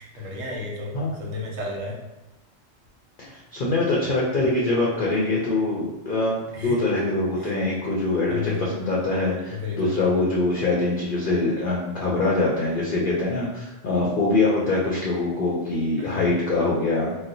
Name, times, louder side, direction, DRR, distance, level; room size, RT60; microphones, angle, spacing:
voice 1, 0.0-2.0 6.5-6.8 7.4-7.5 8.3-8.8 9.5-10.2 16.0-16.3, left 3 dB, 80° right, -2 dB, 1.2 m, -33 dB
voice 2, 3.2-17.1, left 2 dB, 55° left, -4 dB, 0.6 m, -24 dB
4.0 x 2.1 x 2.5 m, 1.0 s
omnidirectional pair, 1.3 m